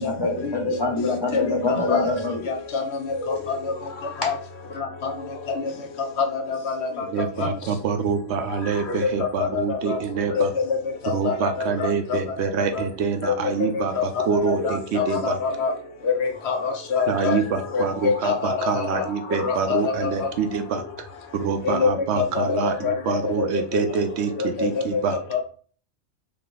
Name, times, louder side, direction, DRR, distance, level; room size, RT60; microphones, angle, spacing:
voice 1, 0.0-2.4 4.2-4.3, left 2 dB, 25° left, 1 dB, 0.9 m, -25 dB
voice 2, 2.5-2.8 3.2-3.6 4.2-4.3 5.0-5.1 6.2-6.7 7.4-7.5 8.9-9.1 9.4-10.0 10.4-10.8 11.0-11.5 11.8-12.2 13.2-13.3 13.7-15.7 16.2-17.4 17.7-19.0 19.4-20.3 21.6-21.9 22.2-23.2 23.5-23.6 24.4-24.7 25.3-25.4, left 5 dB, 70° left, 3 dB, 1.0 m, -25 dB
voice 3, 7.1-10.5 11.1-15.4 17.1-21.1 21.3-25.2, right 6 dB, 70° right, 7 dB, 0.8 m, -26 dB
3.4 x 3.0 x 3.9 m, 0.42 s
omnidirectional pair, 1.2 m